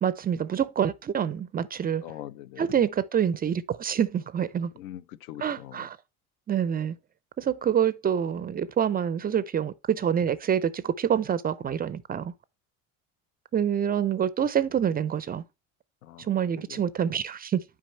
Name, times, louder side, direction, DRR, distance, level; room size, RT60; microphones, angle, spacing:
voice 1, 0.0-2.0 2.6-4.7 5.4-6.0 6.5-7.0 7.4-12.3 13.5-15.4 16.2-17.6, right 8 dB, 25° right, 0.3 m, -26 dB
voice 2, 2.0-2.7 4.8-5.9 16.0-16.3 16.6-16.8, left 13 dB, 85° left, 0.5 m, -42 dB
6.0 x 4.7 x 4.2 m
hypercardioid pair, 80°, 43 cm